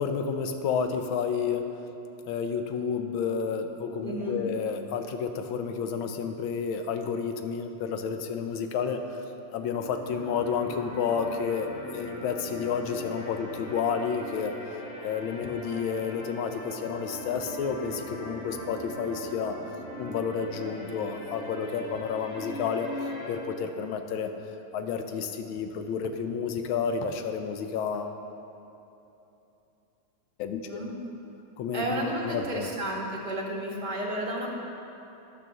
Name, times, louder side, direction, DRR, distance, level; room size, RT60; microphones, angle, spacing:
voice 1, 0.0-1.8 2.3-9.2 9.5-14.6 15.0-19.6 20.0-22.9 23.3-24.3 24.7-28.2 30.4-30.8 31.6-32.7, left 6 dB, 90° left, 6 dB, 1.5 m, -30 dB
voice 2, 4.0-4.4 30.7-30.9 31.7-34.5, right 1 dB, 25° right, -2 dB, 1.4 m, -32 dB
sound 1, 9.6-23.3, left 1 dB, 45° left, 2.5 m, -40 dB
10.5 x 6.3 x 6.7 m, 2.9 s
omnidirectional pair, 2.2 m